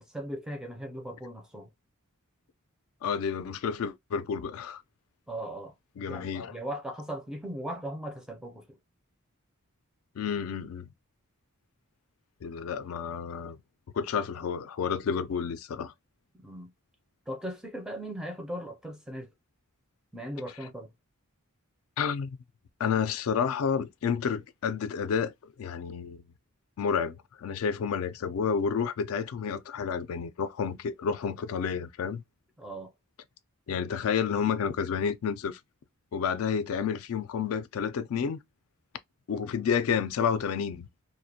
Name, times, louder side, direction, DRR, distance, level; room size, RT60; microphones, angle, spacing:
voice 1, 0.0-1.7 5.3-5.7 6.1-8.8 16.3-16.7 17.3-19.3 20.1-20.9 32.6-32.9, right 1 dB, 5° right, 0.4 m, -38 dB
voice 2, 3.0-4.8 6.0-6.5 10.2-10.9 12.4-13.6 13.9-15.9 22.0-22.4 22.8-25.3 25.6-26.2 26.8-32.2 33.7-35.6 36.1-38.4 39.3-40.9, left 6 dB, 70° left, 0.3 m, -30 dB
2.4 x 2.1 x 2.6 m
head